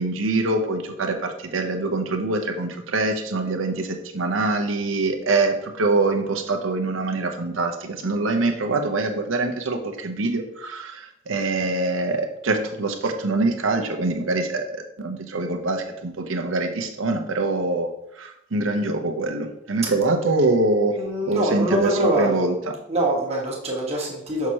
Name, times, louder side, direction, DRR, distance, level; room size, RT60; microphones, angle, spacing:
voice 1, 0.0-17.9 18.2-21.0 21.3-22.8, right 2 dB, 75° right, 5 dB, 0.8 m, -24 dB
voice 2, 20.9-22.4 22.9-24.5, right 1 dB, 30° right, -3 dB, 1.4 m, -24 dB
6.3 x 5.7 x 2.9 m, 0.82 s
head